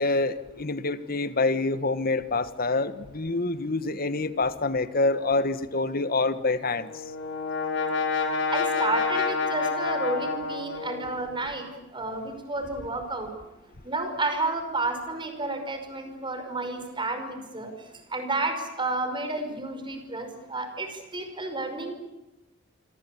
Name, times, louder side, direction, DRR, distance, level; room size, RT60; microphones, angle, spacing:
voice 1, 0.0-6.9, left 3 dB, 45° left, 13 dB, 1.5 m, -26 dB
Brass instrument, 6.6-11.4, left 4 dB, 65° left, 4.7 m, -28 dB
voice 2, 8.5-13.3 13.8-17.7 18.1-21.9, right 2 dB, 25° right, 6 dB, 5.4 m, -31 dB
27.0 x 25.5 x 8.5 m, 1.0 s
head